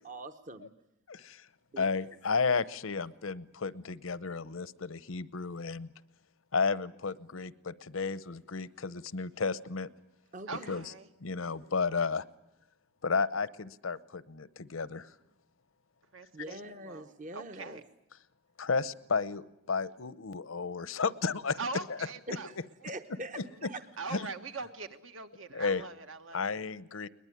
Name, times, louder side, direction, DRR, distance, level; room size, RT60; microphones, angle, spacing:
voice 1, 0.0-0.7 1.7-1.9 10.3-10.7 16.3-17.8 22.3-22.5 22.8-24.2, right 2 dB, 40° right, 8 dB, 0.9 m, -43 dB
voice 2, 1.1-1.5 1.8-5.9 6.5-9.9 10.7-10.8 11.2-12.2 13.0-15.1 18.6-21.6 23.4-23.7 24.1-24.2 25.5-25.9 26.3-27.1, left 4 dB, 80° left, 17 dB, 0.8 m, -33 dB
voice 3, 10.5-11.1 16.1-17.8 21.6-22.5 22.8-22.9 24.0-26.5, right 3 dB, 70° right, 8 dB, 1.6 m, -42 dB
21.5 x 21.0 x 9.9 m, 0.87 s
head